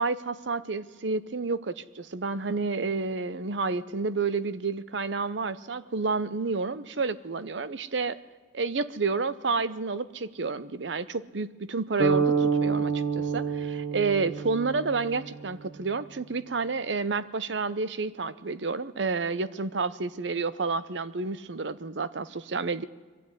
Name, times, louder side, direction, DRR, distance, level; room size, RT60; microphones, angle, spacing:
voice 1, 0.0-8.2 8.5-22.8, right 4 dB, 70° right, 15 dB, 0.8 m, -30 dB
sound 1, 12.0-15.9, right 5 dB, 85° right, 2.3 m, -28 dB
22.5 x 15.0 x 9.7 m, 1.4 s
head